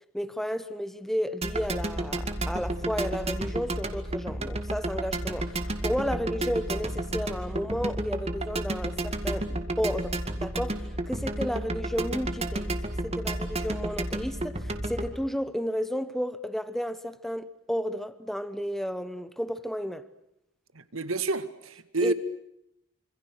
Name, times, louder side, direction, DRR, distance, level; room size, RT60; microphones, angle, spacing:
voice 1, 0.1-9.5 9.8-12.7 13.0-20.1 22.0-22.1, equal, ahead, 1.1 m, -32 dB
sound 1, 1.4-15.1, right 1 dB, 30° right, 2.2 m, -32 dB
voice 2, 20.7-22.1, right 3 dB, 80° right, 2.0 m, -29 dB
27.0 x 26.5 x 6.5 m
head